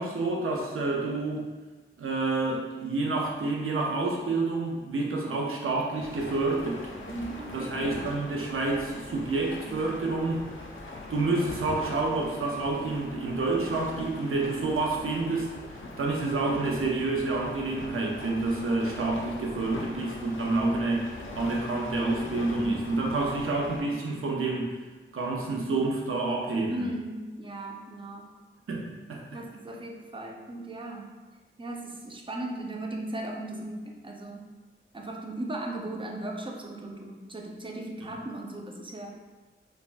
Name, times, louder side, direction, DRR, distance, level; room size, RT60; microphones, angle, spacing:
voice 1, 0.0-1.5 2.0-6.8 7.5-10.4 11.1-15.5 16.0-24.7 25.1-26.8 28.7-29.2, right 3 dB, 80° right, -1 dB, 0.5 m, -28 dB
sound 1, 6.0-23.8, left 2 dB, 70° left, 0.5 m, -41 dB
voice 2, 7.0-7.9 26.7-28.4 29.3-31.1 31.6-34.5 34.9-39.1, right 1 dB, 25° right, 1 dB, 0.3 m, -37 dB
3.3 x 2.1 x 2.5 m, 1.3 s
wide cardioid pair, 90°, 21 cm